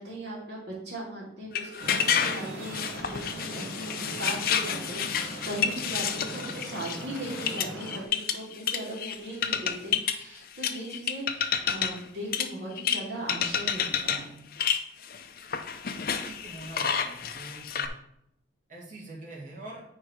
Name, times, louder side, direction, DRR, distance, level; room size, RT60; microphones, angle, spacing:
voice 1, 0.0-14.3, right 1 dB, 65° right, -5 dB, 2.2 m, -38 dB
sound 1, 1.6-9.2 9.4-10.2 10.6-12.1 12.3-13.0 13.3-14.2 14.5-17.9, left 8 dB, 50° left, 0.5 m, -30 dB
Traffic noise roadway noise, 1.8-8.1, right 1 dB, 85° right, 0.9 m, -40 dB
voice 2, 16.0-17.9 18.7-19.8, right 2 dB, 45° right, -3 dB, 2.1 m, -44 dB
9.2 x 3.2 x 4.8 m, 0.76 s
head